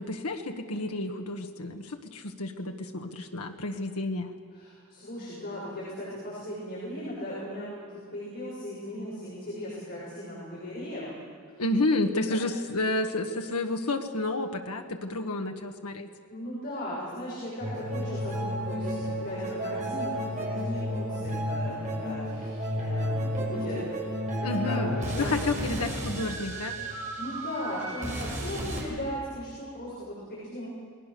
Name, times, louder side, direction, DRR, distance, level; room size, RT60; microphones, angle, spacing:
voice 1, 0.0-4.3 11.6-16.1 24.4-24.9 25.2-26.7, left 2 dB, 85° left, 4 dB, 1.5 m, -30 dB
voice 2, 4.5-11.2 12.3-12.4 16.3-23.8 24.4-25.3 26.9-30.7, equal, 45° left, -7 dB, 6.6 m, -37 dB
sound 1, 17.6-28.8, equal, 35° right, 5.9 m, -32 dB
29.5 x 20.0 x 6.9 m, 2.2 s
head